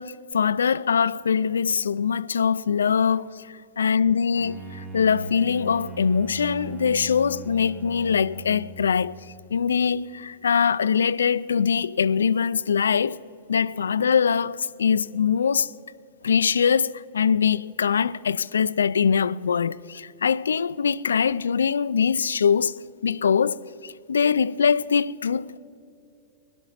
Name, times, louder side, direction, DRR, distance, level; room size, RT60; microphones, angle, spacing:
voice 1, 0.0-9.3 9.5-13.2 13.5-15.7 16.2-22.8 23.0-25.6, left 6 dB, 90° left, 0.3 m, -23 dB
Bowed string instrument, 4.3-9.3, right 2 dB, 35° right, 1.7 m, -39 dB
17.0 x 11.5 x 5.8 m
hypercardioid pair, 125°, 0 cm